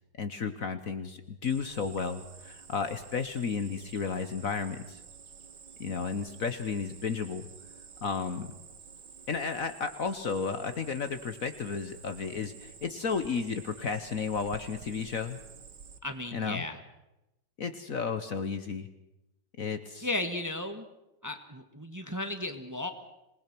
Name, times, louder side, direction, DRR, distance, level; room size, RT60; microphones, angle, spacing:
voice 1, 0.2-5.0 5.8-7.5 8.0-8.5 9.3-15.4 16.3-16.6 17.6-18.9 19.6-20.1, left 5 dB, 50° left, 9 dB, 1.4 m, -33 dB
Cricket, 1.4-16.0, right 6 dB, 65° right, 1.9 m, -50 dB
voice 2, 16.0-16.8 20.0-20.8 21.2-22.9, left 2 dB, 10° right, 7 dB, 1.3 m, -35 dB
26.5 x 19.5 x 6.1 m, 0.94 s
omnidirectional pair, 2.0 m